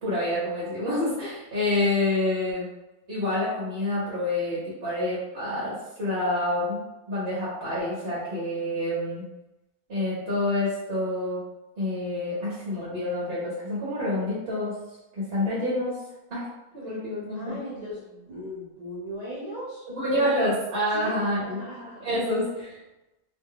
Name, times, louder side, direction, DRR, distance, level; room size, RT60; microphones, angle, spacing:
voice 1, 0.0-2.6 3.1-9.3 9.9-11.4 11.8-14.7 15.1-16.0 16.3-16.5 16.7-17.6 20.0-21.6 22.0-22.7, left 1 dB, 45° right, -8 dB, 1.0 m, -27 dB
voice 2, 17.3-20.3 20.9-22.1, equal, 75° right, -8 dB, 0.3 m, -38 dB
2.7 x 2.2 x 3.6 m, 1.0 s
omnidirectional pair, 1.5 m